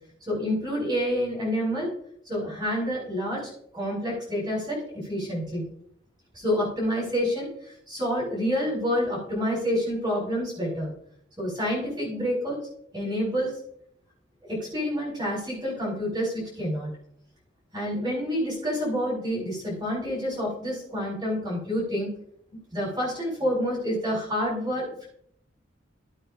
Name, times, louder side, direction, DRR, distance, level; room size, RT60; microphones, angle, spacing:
voice 1, 0.3-1.9 2.2-5.7 6.3-7.5 7.9-10.9 11.4-12.6 12.9-13.6 14.4-16.9 17.7-22.1 22.7-25.1, equal, 20° right, -9 dB, 5.0 m, -28 dB
14.5 x 8.9 x 2.5 m, 0.66 s
head